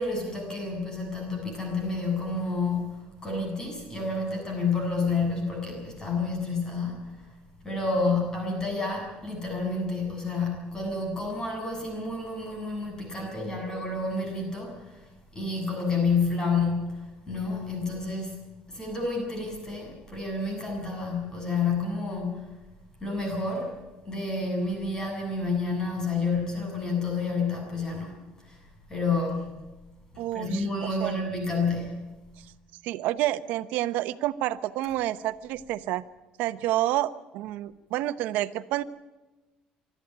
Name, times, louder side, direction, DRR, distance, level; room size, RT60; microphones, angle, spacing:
voice 1, 0.0-7.2 7.6-15.0 15.3-18.4 18.7-22.6 23.0-23.7 24.1-28.6 28.9-29.5 30.3-32.1 34.8-34.9, left 3 dB, 25° left, 2 dB, 7.5 m, -29 dB
voice 2, 30.2-31.1 32.8-36.0 36.4-38.8, right 14 dB, 80° right, 13 dB, 0.9 m, -29 dB
24.5 x 13.0 x 9.3 m, 1.1 s
cardioid pair, 115°, 3 cm